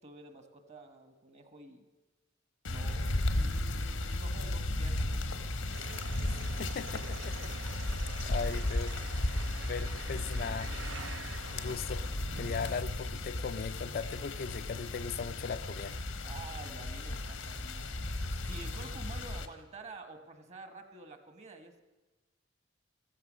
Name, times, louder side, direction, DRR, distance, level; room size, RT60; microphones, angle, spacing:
voice 1, 0.0-1.9 2.6-5.5 16.2-18.1 18.4-21.8, right 3 dB, 35° right, 8 dB, 1.3 m, -49 dB
sound 1, 2.6-19.5, left 1 dB, 90° left, 1.2 m, -35 dB
sound 2, 5.7-12.8, right 5 dB, 75° right, 0.7 m, -47 dB
voice 2, 6.6-7.7 8.3-9.0 9.6-10.7 11.5-12.0 12.4-16.0, left 5 dB, 50° left, 11 dB, 0.4 m, -38 dB
14.5 x 14.0 x 6.2 m, 1.2 s
head